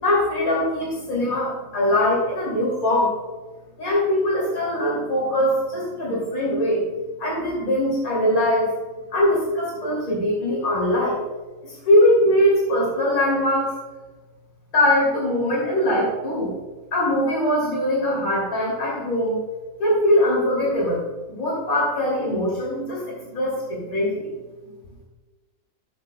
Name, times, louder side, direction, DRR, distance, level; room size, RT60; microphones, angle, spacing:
voice 1, 0.0-3.2 3.8-6.8 7.2-8.7 9.1-11.2 11.6-13.8 14.7-16.5 16.9-19.4 19.8-21.0 21.3-24.3, left 1 dB, 90° left, -5 dB, 3.2 m, -21 dB
15.0 x 7.6 x 2.2 m, 1.3 s
omnidirectional pair, 1.5 m